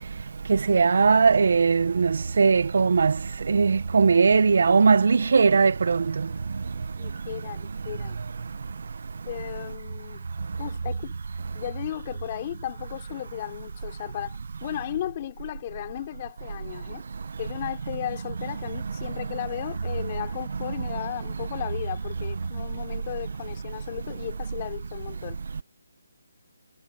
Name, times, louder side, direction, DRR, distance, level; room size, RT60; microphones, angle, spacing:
voice 1, 0.7-2.1 2.4-3.1 3.5-6.0, right 5 dB, 60° right, 1.5 m, -19 dB
voice 2, 7.0-8.2 9.2-10.3 10.6-11.1 11.5-17.0 17.4-25.4, left 12 dB, 30° left, 4.5 m, -35 dB
hypercardioid pair, 160°, 0 cm